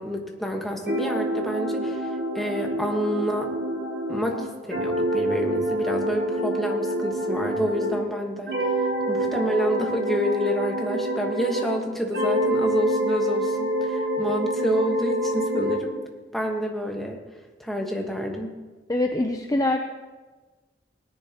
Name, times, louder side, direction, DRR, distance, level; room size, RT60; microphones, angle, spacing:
voice 1, 0.0-3.5 4.1-8.7 9.1-15.9 16.3-17.2 17.6-18.5, equal, ahead, 1 dB, 1.3 m, -28 dB
sound 1, 0.9-8.1 8.5-11.8 12.1-15.8, right 1 dB, 85° right, 4.1 m, -26 dB
voice 2, 18.9-19.8, left 1 dB, 20° left, 4 dB, 0.5 m, -23 dB
18.5 x 10.5 x 2.9 m, 1.3 s
head